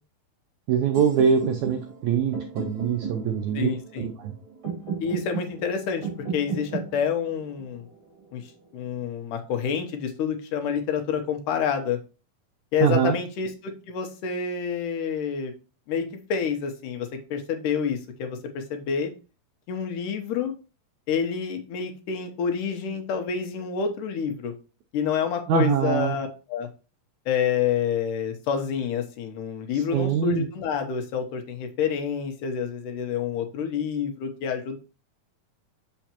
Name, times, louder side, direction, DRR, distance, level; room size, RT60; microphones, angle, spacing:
voice 1, 0.7-3.7 4.0-4.3 12.8-13.2 25.5-26.2 29.7-30.5, right 7 dB, 85° right, 5 dB, 1.7 m, -23 dB
sound 1, 0.9-8.9, right 6 dB, 35° right, 3.7 m, -35 dB
voice 2, 3.5-4.1 5.0-7.8 8.3-8.4 8.7-12.0 12.7-15.5 15.9-19.1 19.7-20.5 21.1-24.5 24.9-26.7 27.3-34.8, left 7 dB, 75° left, 5 dB, 2.2 m, -28 dB
7.0 x 5.6 x 2.9 m, 0.32 s
omnidirectional pair, 4.0 m